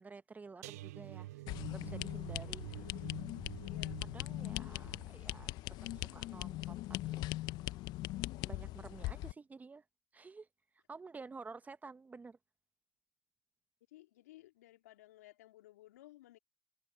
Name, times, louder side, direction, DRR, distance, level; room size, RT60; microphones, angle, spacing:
voice 1, 0.0-1.4 1.7-2.7 4.0-5.5 5.9-7.3 7.7-7.8 8.5-9.8 10.1-10.5 10.9-12.4, right 4 dB, 20° right, 1.3 m, -51 dB
sound 1, 0.6-7.7 8.0-8.4 8.7-8.8, right 16 dB, 75° right, 1.2 m, -50 dB
sound 2, 1.5-9.3, left 17 dB, 55° left, 1.1 m, -40 dB
voice 2, 2.5-3.0 3.6-4.0 13.9-16.4, left 16 dB, 75° left, 2.7 m, -59 dB
open air
hypercardioid pair, 80°, 9 cm